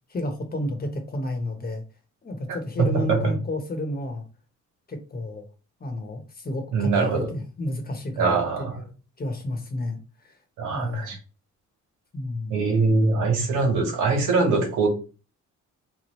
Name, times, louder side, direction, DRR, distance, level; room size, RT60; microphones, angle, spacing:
voice 1, 0.1-1.8 2.2-4.2 4.9-5.4 5.8-8.8 9.2-10.0 10.2-10.4 10.7-11.2 12.1-12.6, left 1 dB, 30° left, 5 dB, 1.0 m, -31 dB
voice 2, 2.5-3.3 6.7-7.3 8.2-8.8 10.6-11.2 12.5-14.9, right 4 dB, 85° right, 2 dB, 1.3 m, -23 dB
3.7 x 3.1 x 3.0 m, 0.35 s
cardioid pair, 90°, 30 cm